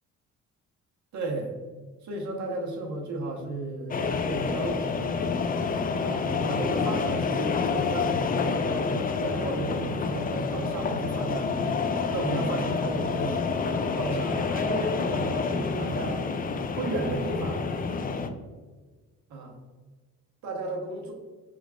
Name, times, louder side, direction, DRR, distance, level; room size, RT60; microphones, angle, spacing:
voice 1, 1.1-1.5 2.0-5.2 6.0-11.5 12.1-13.4 13.9-16.2 16.7-17.6 19.3-19.6 20.4-21.1, right 2 dB, 70° right, 0 dB, 1.1 m, -33 dB
sound 1, 3.9-18.3, left 5 dB, 30° left, 0.4 m, -28 dB
5.0 x 3.5 x 2.4 m, 1.4 s
cardioid pair, 90°, 30 cm